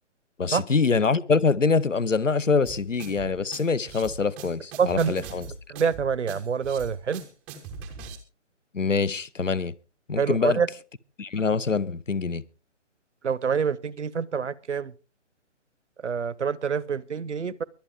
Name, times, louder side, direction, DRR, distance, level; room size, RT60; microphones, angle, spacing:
voice 1, 0.4-5.5 8.7-9.7 10.1-10.6 11.2-12.4, left 4 dB, 85° left, 0.9 m, -24 dB
sound 1, 2.6-8.2, right 5 dB, 5° right, 0.5 m, -41 dB
voice 2, 4.8-5.1 5.7-7.2 10.2-10.7 13.2-14.9 16.0-17.6, right 6 dB, 70° right, 0.9 m, -26 dB
23.0 x 8.6 x 3.6 m
figure-of-eight pair, 140°, 37 cm